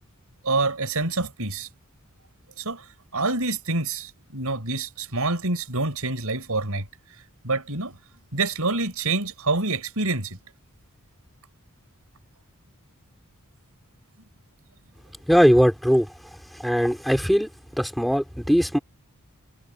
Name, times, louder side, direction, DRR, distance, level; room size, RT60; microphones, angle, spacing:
voice 1, 0.4-1.7 2.6-2.8 3.1-6.9 7.4-8.0 8.3-10.4, right 3 dB, 75° right, 5.8 m, -26 dB
voice 2, 15.3-16.1 16.5-17.5 17.8-18.8, equal, ahead, 3.8 m, -20 dB
head